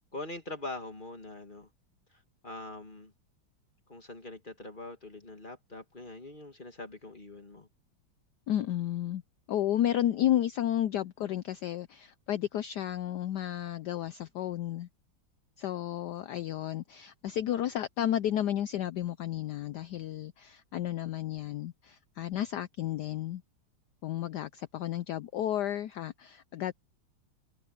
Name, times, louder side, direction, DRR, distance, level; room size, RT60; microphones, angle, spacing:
voice 1, 0.1-1.7 2.1-3.1 3.9-7.7, left 2 dB, 25° left, 2.1 m, -43 dB
voice 2, 8.5-9.2 9.5-14.9 15.6-23.4 24.0-26.7, left 12 dB, 75° left, 1.0 m, -32 dB
omnidirectional pair, 2.3 m